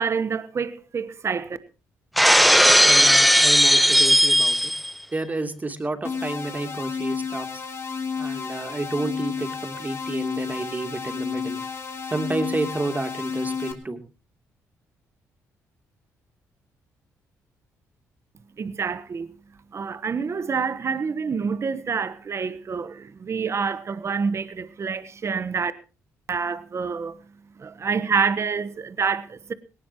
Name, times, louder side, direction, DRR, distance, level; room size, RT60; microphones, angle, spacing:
voice 1, 0.0-1.6 18.6-19.3 19.7-25.7 26.3-27.2 27.6-29.5, right 5 dB, 45° right, 1.2 m, -27 dB
Shatter, 2.2-4.9, equal, ahead, 0.8 m, -16 dB
voice 2, 2.8-4.7 5.1-7.6 8.2-11.6 12.1-14.0, right 2 dB, 25° right, 3.2 m, -30 dB
sound 1, 6.0-13.7, left 5 dB, 40° left, 3.1 m, -31 dB
18.5 x 18.5 x 3.0 m
supercardioid pair, 60°, 7 cm